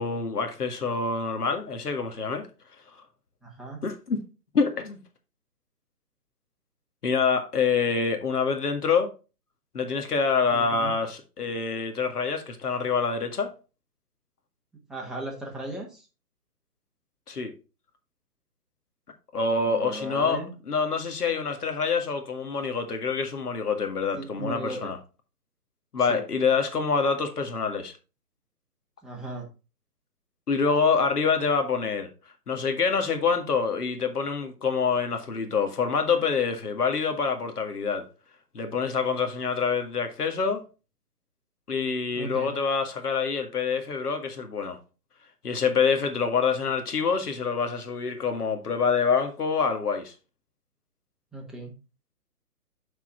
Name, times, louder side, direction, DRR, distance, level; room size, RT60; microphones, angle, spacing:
voice 1, 0.0-2.5 3.8-4.2 4.5-5.0 7.0-9.1 9.7-13.5 17.3-17.5 19.3-25.0 25.9-27.9 30.5-32.1 32.5-38.0 38.5-40.6 41.7-44.8 45.4-50.1, left 5 dB, 70° left, 2.0 m, -26 dB
voice 2, 3.4-3.8 10.5-11.0 14.9-16.1 19.7-20.5 24.1-24.9 26.1-26.2 29.0-29.5 42.2-42.5 51.3-51.8, right 2 dB, ahead, 1.2 m, -36 dB
8.2 x 4.7 x 4.6 m
figure-of-eight pair, 140°, 47 cm